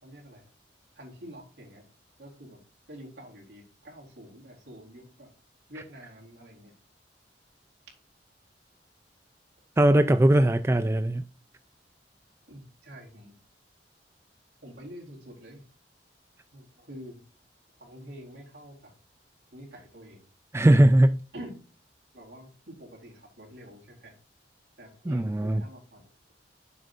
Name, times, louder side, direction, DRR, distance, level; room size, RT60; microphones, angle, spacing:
voice 1, 0.0-0.5 1.0-1.9 2.2-2.6 2.9-5.4 5.7-6.7 12.5-13.3 14.6-15.6 16.5-17.2 17.8-19.0 19.5-20.3 21.3-21.5 22.1-24.2 24.8-26.0, equal, 65° right, 3.9 m, -47 dB
voice 2, 9.8-11.3 20.5-21.2 25.1-25.6, right 1 dB, 15° right, 0.4 m, -20 dB
10.5 x 7.5 x 2.5 m
head